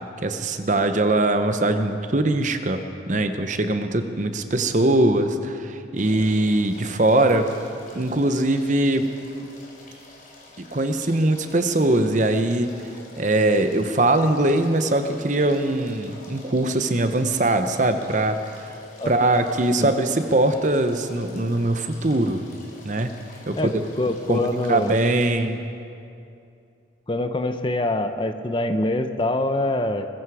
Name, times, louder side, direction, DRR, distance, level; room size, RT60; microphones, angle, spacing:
voice 1, 0.2-2.8 3.1-7.5 7.9-9.1 10.6-12.7 13.2-18.4 18.7-18.8 19.1-22.4 22.8-23.1 23.5-23.6 24.3-25.6, right 2 dB, 40° right, 8 dB, 0.8 m, -21 dB
sound 1, 6.0-25.3, left 2 dB, 45° left, 3.7 m, -47 dB
voice 2, 24.0-24.9 27.1-30.1, left 1 dB, 25° left, 8 dB, 0.7 m, -24 dB
21.0 x 14.0 x 4.9 m, 2.5 s
head